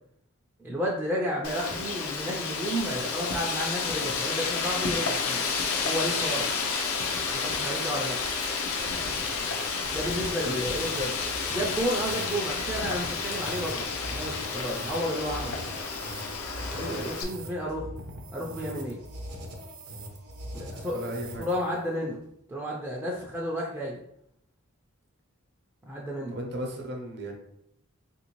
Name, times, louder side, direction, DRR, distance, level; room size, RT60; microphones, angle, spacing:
voice 1, 0.6-5.5 5.8-6.5 7.3-8.2 9.9-13.8 14.1-15.6 16.7-17.9 18.3-19.0 20.5-21.1 21.4-22.2 22.5-24.0 25.9-26.4, equal, 10° right, -4 dB, 0.4 m, -32 dB
Wind, 1.4-17.2, left 4 dB, 85° left, 0.5 m, -31 dB
sound 1, 8.5-21.8, right 1 dB, 85° right, 0.7 m, -42 dB
voice 2, 16.8-17.1 20.9-21.4 26.3-27.4, right 1 dB, 50° right, 2 dB, 0.6 m, -35 dB
3.4 x 2.6 x 2.9 m, 0.73 s
head